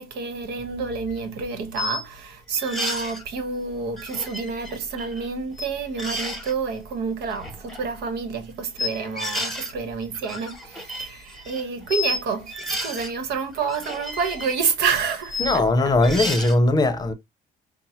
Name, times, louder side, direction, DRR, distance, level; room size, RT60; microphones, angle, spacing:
voice 1, 0.0-15.9, right 5 dB, 75° right, 1.1 m, -28 dB
sound 1, 1.1-1.2 1.7-2.0 2.5-3.2 4.0-5.3 5.5-5.7 6.0-6.5 7.2-7.8 8.8-9.7 10.0-12.2 12.5-13.1 13.5-15.6 16.0-16.5, left 1 dB, ahead, 1.2 m, -32 dB
voice 2, 15.4-17.1, left 2 dB, 25° left, 0.7 m, -19 dB
5.4 x 2.1 x 2.8 m
cardioid pair, 110°, 17 cm